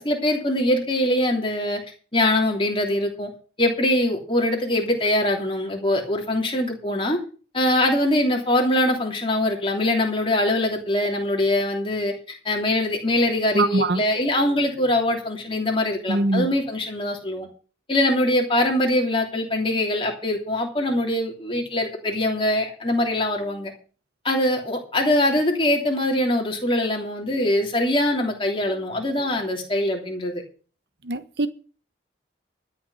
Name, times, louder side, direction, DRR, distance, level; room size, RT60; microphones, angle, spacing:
voice 1, 0.0-1.8 2.1-3.3 3.6-7.2 7.5-17.5 17.9-23.7 24.2-30.4, left 1 dB, 30° left, 3.0 m, -23 dB
voice 2, 13.5-14.0 16.1-16.5 31.0-31.5, right 2 dB, 60° right, 1.1 m, -22 dB
13.0 x 6.1 x 8.3 m
head